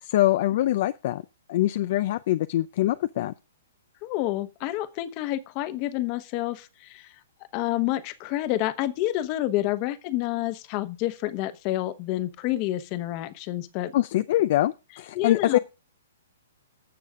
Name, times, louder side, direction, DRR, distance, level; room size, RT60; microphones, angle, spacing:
voice 1, 0.0-1.2 1.5-3.3 13.9-15.6, left 14 dB, 50° left, 0.5 m, -23 dB
voice 2, 4.0-7.1 7.5-13.9 15.1-15.6, left 15 dB, 35° left, 1.1 m, -29 dB
19.0 x 6.9 x 3.7 m
hypercardioid pair, 150°, 0 cm